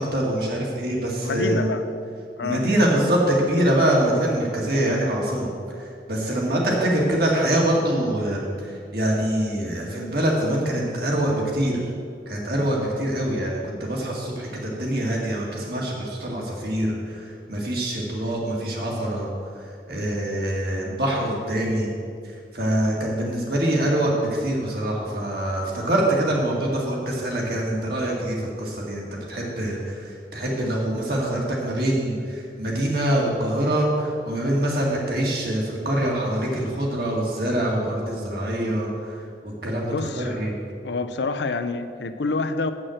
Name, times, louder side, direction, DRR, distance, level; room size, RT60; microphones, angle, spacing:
voice 1, 0.0-1.7 2.4-5.5 5.8-11.8 12.3-19.3 19.9-21.9 22.5-39.2 39.4-40.5, right 1 dB, 60° right, -2 dB, 2.0 m, -24 dB
voice 2, 1.2-1.9 2.4-2.7 6.5-6.7 18.3-18.4 39.9-40.4 40.8-42.7, left 3 dB, 80° left, 10 dB, 0.6 m, -27 dB
7.7 x 6.0 x 7.8 m, 2.3 s
head